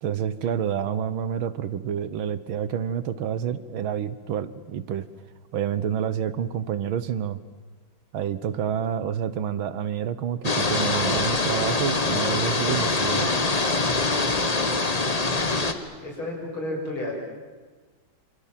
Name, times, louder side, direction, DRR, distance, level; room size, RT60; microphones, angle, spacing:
voice 1, 0.0-5.1 5.5-7.4 8.1-13.3, right 8 dB, 80° right, 14 dB, 1.9 m, -28 dB
sound 1, 10.4-15.7, left 3 dB, 20° left, 1.2 m, -24 dB
voice 2, 15.0-17.1, left 1 dB, 85° left, 0 dB, 7.4 m, -34 dB
27.0 x 26.0 x 7.6 m, 1.4 s
omnidirectional pair, 2.2 m